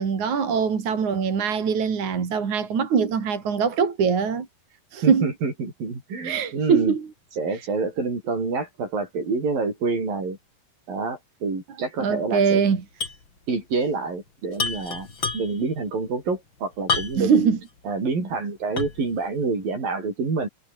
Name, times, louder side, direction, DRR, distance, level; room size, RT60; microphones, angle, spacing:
voice 1, 0.0-4.5 4.9-5.3 6.2-7.1 12.0-12.8 17.2-17.6, right 6 dB, 60° right, 4.6 m, -22 dB
voice 2, 5.0-6.9 7.4-10.4 10.9-12.6 13.5-15.1 15.3-17.4 17.9-20.5, right 4 dB, 80° right, 9.3 m, -27 dB
sound 1, 13.0-13.3 13.5-13.6 14.5-15.7 16.9-17.4 17.9-18.0 18.8-19.1, left 4 dB, 35° left, 4.4 m, -28 dB
omnidirectional pair, 4.0 m